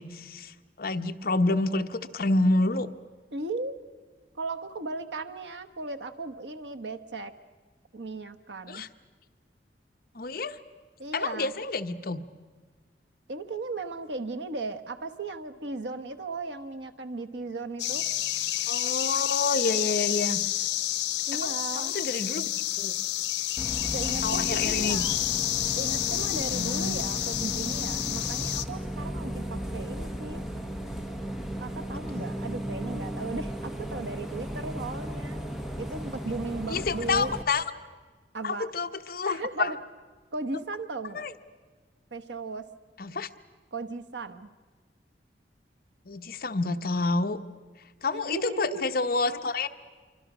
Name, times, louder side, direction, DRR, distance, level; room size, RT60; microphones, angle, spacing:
voice 1, 0.0-2.9 8.7-8.9 10.1-10.6 11.1-12.2 18.7-20.4 21.3-22.9 24.2-25.1 26.5-27.0 32.1-32.3 36.7-37.6 38.4-39.7 41.1-41.3 43.0-43.3 46.1-47.4 48.0-49.7, left 3 dB, 55° left, 7 dB, 0.9 m, -28 dB
voice 2, 3.3-3.8 4.4-7.3 7.9-8.8 11.0-11.5 13.3-18.1 21.3-21.9 23.9-25.1 25.8-30.4 31.6-35.4 35.8-37.3 38.3-38.7 39.2-39.8 40.3-41.3 42.1-42.7 43.7-44.5 48.1-48.9, right 3 dB, 80° right, 8 dB, 1.2 m, -36 dB
sound 1, 17.8-28.6, left 13 dB, 80° left, 0.9 m, -29 dB
Bus, 23.6-37.4, equal, ahead, 1.3 m, -35 dB
26.5 x 24.5 x 6.1 m, 1.4 s
head